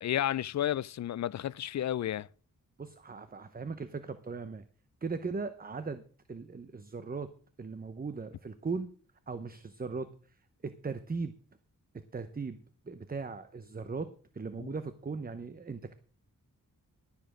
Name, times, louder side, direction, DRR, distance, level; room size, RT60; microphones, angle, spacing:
voice 1, 0.0-2.3 14.6-14.7, left 11 dB, 55° left, 0.5 m, -32 dB
voice 2, 2.8-4.6 5.0-6.0 6.3-7.3 7.6-8.9 9.3-10.4 10.6-11.3 11.9-12.6 12.9-14.1 14.3-15.9, right 4 dB, 25° right, 0.8 m, -38 dB
12.5 x 7.1 x 6.1 m
cardioid pair, 80°, 34 cm